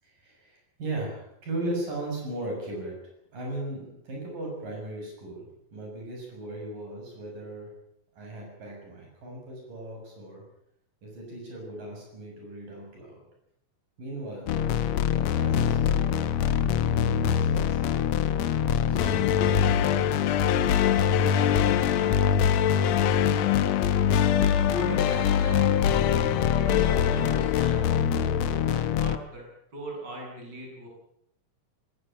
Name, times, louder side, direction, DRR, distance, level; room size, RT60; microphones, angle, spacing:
voice 1, 0.0-3.0 3.3-7.7 8.1-10.4 11.0-13.2 14.0-14.6 15.0-16.2 17.2-18.1 18.4-20.1 20.7-22.2, right 1 dB, 70° right, 0 dB, 8.2 m, -38 dB
sound 1, 14.5-29.2, left 8 dB, 65° left, 1.8 m, -23 dB
voice 2, 24.4-28.1 28.3-30.9, equal, 30° right, -1 dB, 8.3 m, -40 dB
19.0 x 19.0 x 8.9 m, 0.75 s
omnidirectional pair, 3.9 m